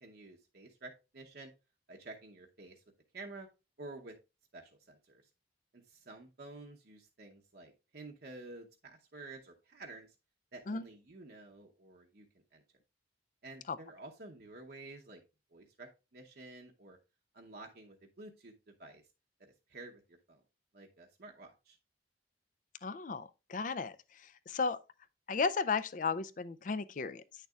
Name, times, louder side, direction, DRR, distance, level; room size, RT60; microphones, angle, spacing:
voice 1, 0.0-1.5 1.9-2.8 3.1-3.5 3.8-4.1 4.5-5.2 5.7-10.1 10.5-12.3 12.5-12.6 13.4-15.2 15.5-17.0 17.3-19.0 19.4-20.4 20.7-21.8, right 2 dB, 55° right, 0.8 m, -51 dB
voice 2, 22.8-24.8 25.3-27.2, left 4 dB, 45° left, 0.4 m, -35 dB
9.3 x 6.6 x 2.3 m
head